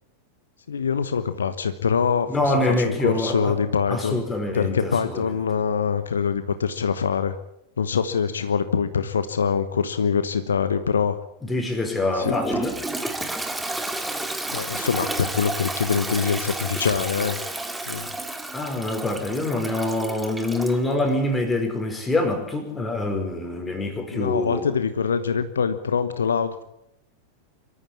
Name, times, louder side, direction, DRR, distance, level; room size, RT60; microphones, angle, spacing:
voice 1, 0.7-4.2 4.5-7.4 7.8-11.2 12.1-12.3 14.5-17.4 17.9-18.1 24.1-26.6, left 6 dB, 70° left, 11 dB, 1.2 m, -24 dB
voice 2, 2.3-3.6 3.9-5.4 11.4-12.8 18.5-24.6, left 2 dB, 10° left, 5 dB, 5.1 m, -25 dB
Toilet flush, 12.2-20.8, right 2 dB, 5° right, 2.2 m, -31 dB
25.0 x 14.0 x 8.8 m, 0.77 s
figure-of-eight pair, 90°, 0 cm